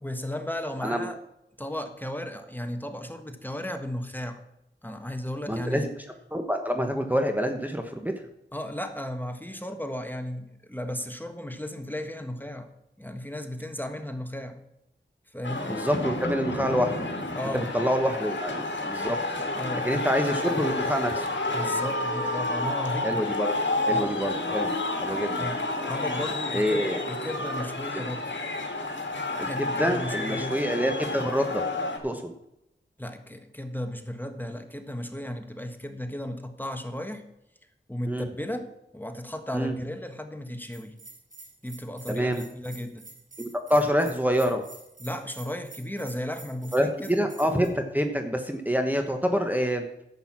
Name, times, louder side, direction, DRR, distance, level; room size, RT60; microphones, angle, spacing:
voice 1, 0.0-1.2 1.6-4.4 4.8-5.9 8.5-12.7 13.0-14.6 15.3-15.8 17.3-17.7 19.5-20.0 21.5-23.2 23.9-24.2 25.4-25.6 25.9-28.3 29.4-30.6 33.0-37.2 37.9-41.0 41.6-43.1 45.0-46.7, left 1 dB, 10° left, 6 dB, 1.3 m, -35 dB
voice 2, 5.5-6.0 6.3-8.1 15.6-16.9 17.7-19.2 19.8-21.3 23.0-23.5 23.8-24.7 25.0-25.5 26.5-27.0 27.9-28.0 29.4-31.6 32.0-32.3 38.1-38.3 39.5-39.7 42.1-42.4 43.4-44.6 46.7-49.8, equal, 10° right, 4 dB, 1.2 m, -26 dB
sound 1, 15.4-32.0, left 2 dB, 70° left, 2.1 m, -30 dB
Bell, 40.7-47.7, right 3 dB, 45° right, 3.3 m, -47 dB
11.0 x 8.0 x 5.9 m, 0.85 s
wide cardioid pair, 50°, 20 cm